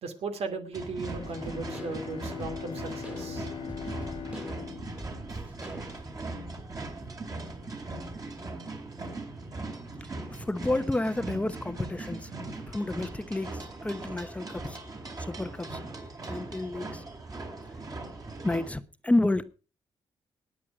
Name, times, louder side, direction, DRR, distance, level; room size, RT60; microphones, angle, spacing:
voice 1, 0.0-3.5, right 4 dB, 75° right, 2.6 m, -37 dB
sound 1, 0.7-18.7, right 2 dB, 35° right, 4.2 m, -40 dB
Bowed string instrument, 1.1-6.1, left 7 dB, 55° left, 0.7 m, -41 dB
sound 2, 1.1-6.2, right 1 dB, 10° right, 2.3 m, -45 dB
voice 2, 10.3-12.3 12.7-14.8 15.2-15.8 16.3-17.0 18.4-19.4, left 2 dB, 10° left, 0.9 m, -30 dB
19.5 x 8.7 x 4.9 m
cardioid pair, 95°, 10 cm